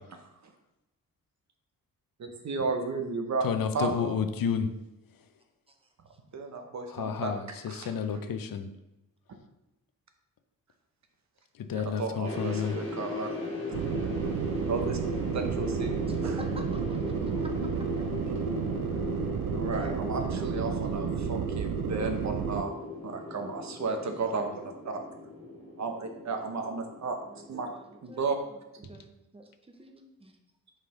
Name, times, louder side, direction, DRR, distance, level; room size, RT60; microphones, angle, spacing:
voice 1, 0.1-0.5 2.2-3.5 3.7-4.2 6.3-7.3 7.7-8.2 11.7-13.4 14.7-15.0 15.3-16.3 19.5-22.7 23.0-25.0 25.8-27.1 27.5-27.7 28.0-28.4 28.8-28.9, right 4 dB, 50° right, 5 dB, 0.8 m, -33 dB
voice 2, 3.4-4.7 6.9-8.7 11.6-12.8, left 7 dB, 65° left, 9 dB, 0.6 m, -31 dB
sound 1, 12.2-28.4, left 3 dB, 15° left, 1.9 m, -38 dB
sound 2, 13.7-22.6, right 9 dB, 70° right, 0.5 m, -32 dB
voice 3, 16.1-16.5 17.4-17.5 19.7-20.4 27.2-28.6 28.9-30.3, right 2 dB, 15° right, 4 dB, 0.6 m, -48 dB
5.5 x 4.9 x 3.7 m, 0.93 s
wide cardioid pair, 155°, 36 cm